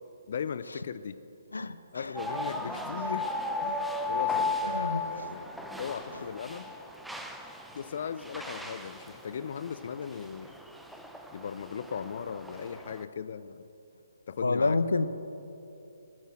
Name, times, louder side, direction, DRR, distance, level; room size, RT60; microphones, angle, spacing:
voice 1, 0.3-1.2 1.9-5.5 5.8-6.7 7.7-10.6 11.3-13.6 14.3-14.8, left 7 dB, 55° left, 14 dB, 0.5 m, -38 dB
voice 2, 1.5-2.1 2.7-2.8 4.6-5.0 6.1-6.2 14.4-15.1, left 3 dB, 85° left, 13 dB, 0.7 m, -29 dB
sound 1, 2.1-13.0, left 2 dB, ahead, 0.7 m, -36 dB
13.0 x 8.9 x 7.5 m, 2.8 s
figure-of-eight pair, 145°, 0 cm